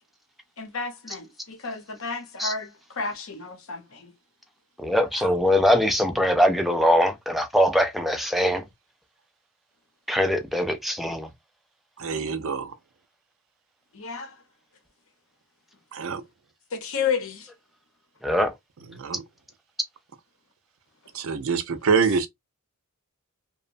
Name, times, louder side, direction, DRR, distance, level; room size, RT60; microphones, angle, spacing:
voice 1, 0.6-4.1 13.9-14.3 16.7-17.5 21.9-22.0, left 5 dB, 65° left, 0.8 m, -31 dB
voice 2, 4.8-8.6 10.1-11.3 18.2-18.5, equal, ahead, 0.3 m, -22 dB
voice 3, 12.0-12.7 15.9-16.2 18.9-19.2 21.1-22.3, right 6 dB, 65° right, 0.5 m, -25 dB
2.8 x 2.1 x 2.5 m
head